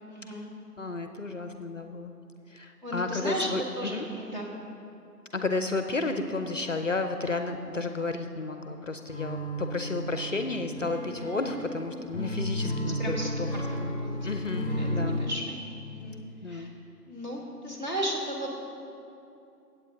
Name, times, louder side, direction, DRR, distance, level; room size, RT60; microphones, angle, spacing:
voice 1, 0.1-0.5 2.8-3.5 3.8-4.5 12.4-13.6 14.0-14.2 14.5-15.6 15.8-16.2 16.4-16.7 17.1-18.6, equal, 30° right, -4 dB, 1.7 m, -35 dB
voice 2, 0.8-2.1 2.5-4.0 5.3-13.5 13.8-13.9 14.2-15.2 16.4-16.8, left 3 dB, 50° left, 7 dB, 0.6 m, -32 dB
sound 1, 9.1-15.2, equal, 5° right, 2.8 m, -33 dB
22.0 x 8.3 x 2.8 m, 2.7 s
figure-of-eight pair, 160°, 48 cm